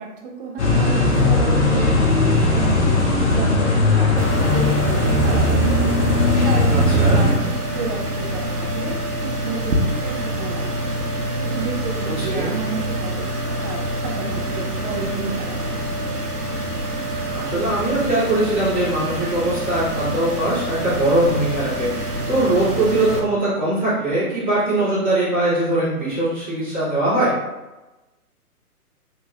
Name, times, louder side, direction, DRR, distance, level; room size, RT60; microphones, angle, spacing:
voice 1, 0.0-3.0 3.3-5.6 6.4-10.8 11.4-16.2, right 4 dB, 35° right, 0 dB, 0.8 m, -32 dB
sound 1, 0.6-7.3, left 2 dB, 50° left, 1.4 m, -18 dB
sound 2, 4.2-23.2, right 1 dB, 85° right, 1.0 m, -26 dB
voice 2, 6.7-7.2 12.0-12.5 17.3-27.4, right 1 dB, 10° left, -16 dB, 0.4 m, -21 dB
4.5 x 3.8 x 2.5 m, 1.1 s
figure-of-eight pair, 125°, 46 cm